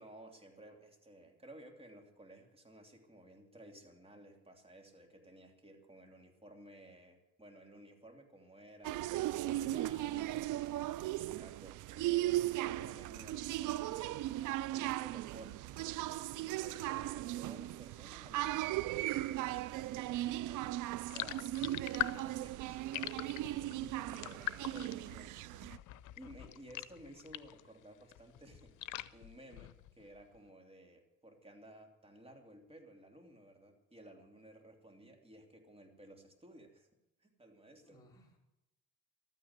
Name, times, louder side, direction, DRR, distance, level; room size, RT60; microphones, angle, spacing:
voice 1, 0.0-10.6 11.0-21.5 21.9-36.9 37.2-38.0, right 1 dB, 20° right, 4 dB, 3.1 m, -56 dB
sound 1, 8.8-25.8, right 15 dB, 85° right, 0.5 m, -37 dB
voice 2, 14.8-15.2 37.8-38.4, equal, 10° left, -6 dB, 5.0 m, -64 dB
sound 2, 21.1-27.7 28.0-30.1, left 16 dB, 85° left, 0.6 m, -43 dB
13.0 x 9.3 x 9.6 m, 0.90 s
cardioid pair, 90°, 30 cm